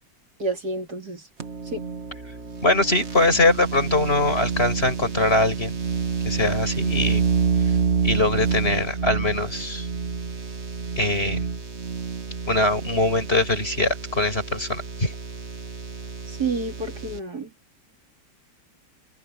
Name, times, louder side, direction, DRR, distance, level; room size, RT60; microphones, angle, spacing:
voice 1, 0.4-1.2 1.7-1.8 16.3-17.5, right 3 dB, 55° right, 3.9 m, -29 dB
sound 1, 1.4-17.2, right 5 dB, 40° right, 1.8 m, -28 dB
voice 2, 2.6-5.7 6.2-7.2 8.0-9.9 11.0-11.5 12.5-15.1, left 2 dB, 30° left, 6.4 m, -22 dB
omnidirectional pair, 2.0 m